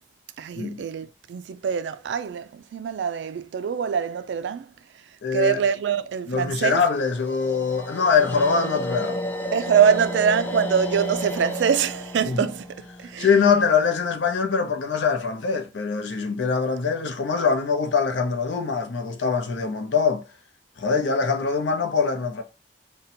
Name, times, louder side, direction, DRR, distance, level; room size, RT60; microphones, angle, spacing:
voice 1, 0.4-4.7 5.3-6.8 9.5-12.7 13.0-13.3, right 7 dB, 75° right, 0.3 m, -24 dB
voice 2, 5.2-5.6 6.3-9.3 12.2-12.5 13.2-20.2 20.8-22.4, left 5 dB, 85° left, 0.6 m, -23 dB
sound 1, 6.8-13.9, equal, 10° left, 0.3 m, -33 dB
2.7 x 2.2 x 4.1 m
head